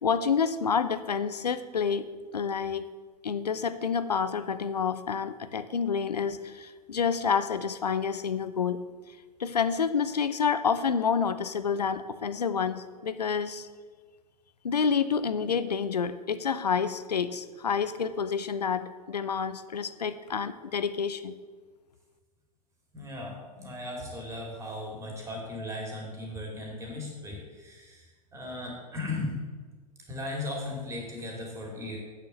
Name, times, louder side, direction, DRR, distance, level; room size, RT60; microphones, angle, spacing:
voice 1, 0.0-2.1 2.3-2.9 3.2-8.8 9.4-13.7 14.6-21.4, left 6 dB, 80° left, 12 dB, 0.6 m, -28 dB
voice 2, 22.9-29.4 30.1-32.0, left 2 dB, 15° right, 0 dB, 3.0 m, -37 dB
8.2 x 7.0 x 6.9 m, 1.4 s
figure-of-eight pair, 95°, 20 cm